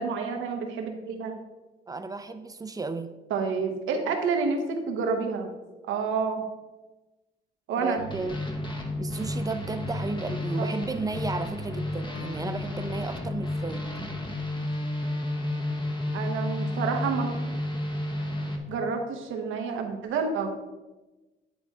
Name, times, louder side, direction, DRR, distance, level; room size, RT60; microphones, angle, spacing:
voice 1, 0.0-1.3 3.3-5.5 5.9-6.5 7.7-8.0 10.6-10.7 16.1-17.3 18.7-20.5, right 5 dB, 85° right, 4 dB, 1.1 m, -29 dB
voice 2, 1.9-3.1 7.8-8.5 9.0-13.9, right 3 dB, 20° right, 9 dB, 0.6 m, -34 dB
sound 1, 8.0-18.6, left 1 dB, 25° left, 1.0 m, -31 dB
10.0 x 4.1 x 3.6 m, 1.1 s
cardioid pair, 90°, 20 cm